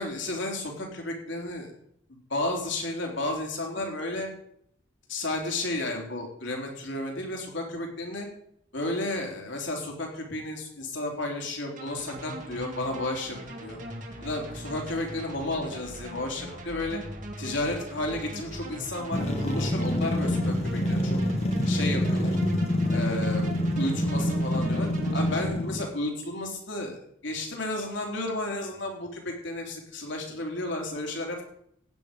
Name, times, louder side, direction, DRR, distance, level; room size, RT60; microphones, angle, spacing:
voice 1, 0.0-1.7 2.3-4.3 5.1-8.3 8.7-13.8 14.2-17.0 17.4-21.2 21.7-22.3 22.9-31.4, left 2 dB, 60° left, 1 dB, 3.6 m, -32 dB
sound 1, 11.8-25.5, right 1 dB, 40° right, 2.0 m, -40 dB
sound 2, 19.1-25.9, left 1 dB, 30° left, 1.5 m, -26 dB
16.0 x 9.6 x 5.2 m, 0.70 s
head